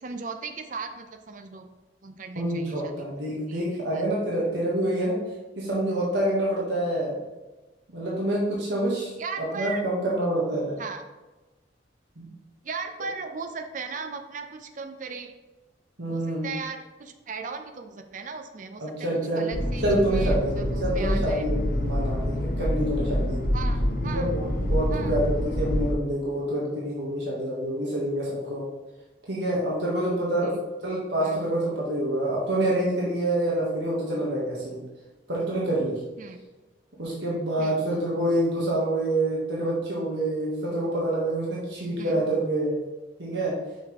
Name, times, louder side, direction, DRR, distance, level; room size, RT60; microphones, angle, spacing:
voice 1, 0.0-1.7 2.0-3.1 3.4-3.7 3.9-4.1 9.2-9.8 10.8-11.0 12.6-15.3 16.1-19.1 19.4-21.4 23.5-24.3 24.9-25.2 30.4-30.6 31.2-31.4 36.2-36.4 37.6-37.8 42.0-42.2, right 4 dB, 45° right, 6 dB, 0.5 m, -37 dB
voice 2, 2.3-5.2 5.6-7.2 7.9-9.1 9.4-10.8 12.2-12.3 16.0-16.5 18.8-19.5 19.8-23.4 24.0-28.6 29.3-30.6 30.8-34.8 35.3-36.0 37.0-42.8 43.2-43.6, right 1 dB, 70° right, -5 dB, 1.3 m, -27 dB
sound 1, 19.5-25.9, left 1 dB, 50° left, 0.9 m, -26 dB
5.8 x 5.4 x 3.0 m, 1.1 s
head